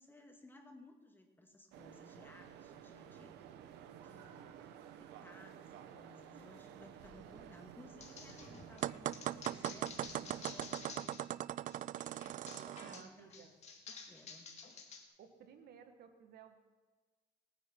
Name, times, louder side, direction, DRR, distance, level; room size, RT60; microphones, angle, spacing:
voice 1, 0.0-3.5 4.0-4.7 5.0-11.2 12.3-13.4 13.9-14.5, left 1 dB, 10° left, 4 dB, 1.9 m, -59 dB
sound 1, 1.7-11.0, right 9 dB, 85° right, 1.0 m, -54 dB
sound 2, 8.0-11.3 11.7-15.0, left 4 dB, 40° left, 2.3 m, -52 dB
sound 3, 8.8-13.0, right 12 dB, 50° right, 0.4 m, -39 dB
voice 2, 12.8-13.5 15.2-16.6, right 7 dB, 70° right, 7 dB, 1.5 m, -57 dB
19.5 x 9.8 x 4.5 m, 1.3 s
cardioid pair, 110°, 17 cm